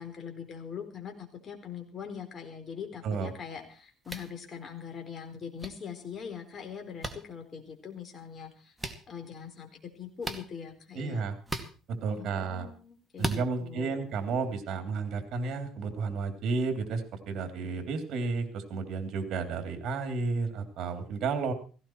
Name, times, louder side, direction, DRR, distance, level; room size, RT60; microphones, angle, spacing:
voice 1, 0.0-8.7 9.1-9.7 9.9-11.2 12.1-14.0, left 7 dB, 40° left, 5 dB, 4.2 m, -42 dB
sound 1, 4.0-4.3 5.6-5.7 7.0-7.1 8.8-9.0 10.2-10.4 11.4-11.7 13.2-13.4, right 1 dB, 5° right, 2.2 m, -34 dB
voice 2, 10.9-11.3 12.0-12.7 13.2-21.5, right 4 dB, 60° right, 8 dB, 2.9 m, -32 dB
17.0 x 16.5 x 4.5 m, 0.39 s
cardioid pair, 115°, 0 cm